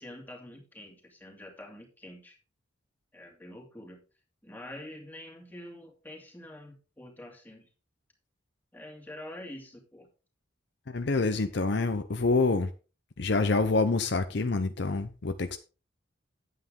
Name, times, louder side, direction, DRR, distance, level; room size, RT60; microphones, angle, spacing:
voice 1, 0.0-2.4 3.1-4.0 4.4-7.7 8.7-10.1, left 1 dB, 10° left, 2.6 m, -46 dB
voice 2, 10.9-12.7 13.2-15.6, left 3 dB, 60° left, 0.7 m, -27 dB
9.5 x 8.6 x 3.7 m
head